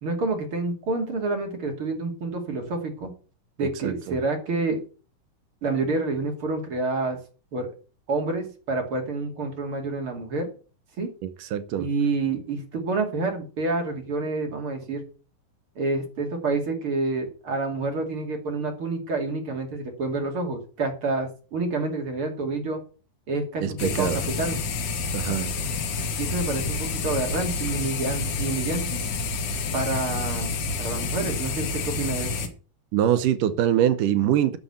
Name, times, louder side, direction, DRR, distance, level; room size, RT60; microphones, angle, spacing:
voice 1, 0.0-3.1 3.6-4.8 5.6-7.2 7.5-7.7 8.1-10.5 11.0-11.1 11.8-15.0 15.8-22.8 23.3-24.6 26.2-29.0 29.7-30.5 30.8-32.5, right 3 dB, 40° right, 3.2 m, -28 dB
voice 2, 3.8-4.2 11.2-11.9 23.6-24.2 25.1-25.5 32.9-34.6, right 10 dB, 80° right, 2.4 m, -24 dB
sound 1, 23.8-32.5, left 4 dB, 70° left, 3.0 m, -29 dB
9.8 x 7.0 x 7.9 m
omnidirectional pair, 3.9 m